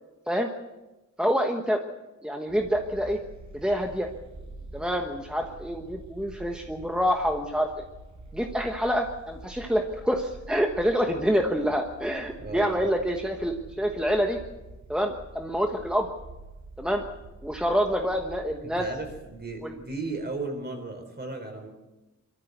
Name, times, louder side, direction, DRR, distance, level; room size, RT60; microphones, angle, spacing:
voice 1, 1.2-1.8 2.2-3.2 3.5-4.1 4.7-7.8 8.3-14.4 14.9-16.1 16.8-17.0 17.4-18.8 19.6-19.7, equal, 5° right, 3 dB, 1.2 m, -27 dB
sound 1, 2.5-20.5, right 2 dB, 85° right, 5.5 m, -47 dB
voice 2, 12.4-12.9 18.6-21.7, right 3 dB, 35° right, 4 dB, 4.6 m, -35 dB
25.0 x 14.0 x 8.1 m, 1.1 s
wide cardioid pair, 160°, 29 cm